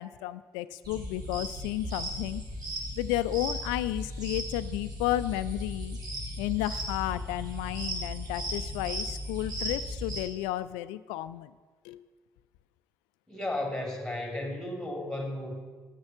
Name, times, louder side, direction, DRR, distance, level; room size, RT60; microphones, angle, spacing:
voice 1, 0.0-2.4 3.0-6.0 6.4-11.5 11.8-12.0, left 15 dB, 70° left, 15 dB, 0.4 m, -32 dB
sound 1, 0.8-10.2, equal, 45° right, 2.5 m, -36 dB
voice 2, 13.3-15.5, left 1 dB, 5° left, 2 dB, 2.6 m, -34 dB
8.1 x 6.4 x 7.1 m, 1.4 s
hypercardioid pair, 50°, 9 cm